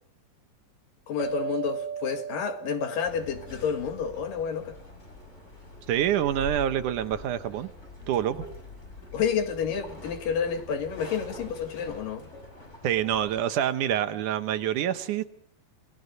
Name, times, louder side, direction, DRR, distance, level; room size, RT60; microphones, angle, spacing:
voice 1, 1.1-4.8 9.1-12.3, left 7 dB, 80° left, 3.5 m, -30 dB
sound 1, 1.2-4.2, right 7 dB, 40° right, 2.6 m, -36 dB
sound 2, 3.0-13.4, left 2 dB, 20° left, 5.3 m, -44 dB
voice 2, 5.9-7.7 8.1-8.4 12.8-15.2, right 10 dB, 70° right, 2.4 m, -26 dB
28.0 x 19.0 x 5.3 m
omnidirectional pair, 3.9 m